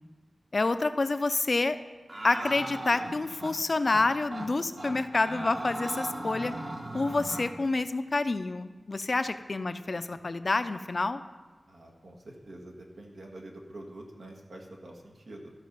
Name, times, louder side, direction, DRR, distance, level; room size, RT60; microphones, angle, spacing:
voice 1, 0.5-1.8 2.2-6.5 6.9-11.2, left 3 dB, 45° left, 11 dB, 0.4 m, -28 dB
sound 1, 2.1-3.5 3.9-4.0 4.3-4.5 4.8-7.5, right 1 dB, 45° right, 1.2 m, -37 dB
voice 2, 10.0-10.4 11.7-15.5, right 1 dB, 80° right, 0 dB, 1.5 m, -47 dB
13.5 x 5.7 x 5.3 m, 1.3 s
wide cardioid pair, 90°, 0 cm